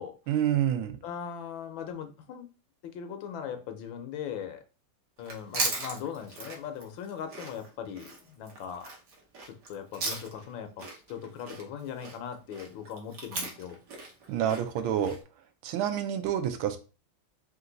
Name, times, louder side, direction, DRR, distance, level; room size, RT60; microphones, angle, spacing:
voice 1, 0.3-0.9 14.3-15.1 15.6-16.8, right 10 dB, 90° right, 8 dB, 1.4 m, -28 dB
voice 2, 1.0-2.5 2.8-4.6 5.2-8.9 9.5-13.8, left 8 dB, 75° left, 7 dB, 1.4 m, -39 dB
Chewing mastication, 5.2-10.5 10.8-15.2, right 3 dB, 50° right, 1.2 m, -37 dB
4.4 x 2.5 x 3.8 m, 0.33 s
omnidirectional pair, 2.2 m